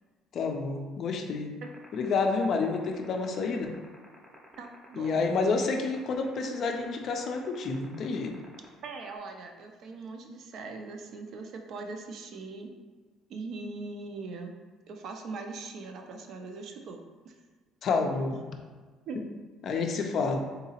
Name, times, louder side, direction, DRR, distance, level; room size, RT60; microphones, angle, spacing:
voice 1, 0.3-1.5 1.9-3.7 5.0-8.3 17.8-18.4 19.6-20.5, left 4 dB, 45° left, 3 dB, 0.4 m, -29 dB
sound 1, 1.6-9.2, right 2 dB, 10° right, 0.6 m, -52 dB
voice 2, 4.6-5.2 8.8-12.7 13.3-14.5 14.9-17.3 18.1-18.2 19.1-19.3, right 3 dB, 50° right, 4 dB, 0.4 m, -41 dB
3.8 x 2.7 x 2.8 m, 1.4 s
cardioid pair, 145°, 0 cm